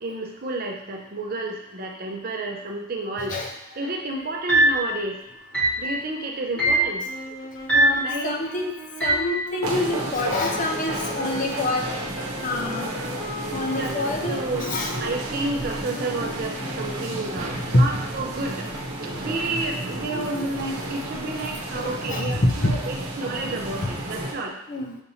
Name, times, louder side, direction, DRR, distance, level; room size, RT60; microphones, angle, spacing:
voice 1, 0.0-3.3 3.7-5.2 5.8-7.0 8.0-8.4 13.6-13.9 14.3-14.6 15.0-18.7 19.2-24.5, right 2 dB, 45° right, 1 dB, 0.6 m, -30 dB
sound 1, 4.5-4.9 5.5-5.9 6.6-6.9 7.7-8.1 9.0-9.3, right 1 dB, 5° left, 1.0 m, -20 dB
sound 2, 7.1-17.8, left 1 dB, 55° left, 0.9 m, -38 dB
voice 2, 7.7-8.7 9.0-11.8 12.4-12.9 13.5-14.9 17.5-17.9 19.5-19.6 20.1-20.4 21.8-22.8 24.7-25.0, left 2 dB, 35° left, 2 dB, 0.5 m, -26 dB
sound 3, 9.6-24.3, right 1 dB, 90° right, 1.0 m, -32 dB
6.7 x 2.9 x 2.7 m, 0.77 s
head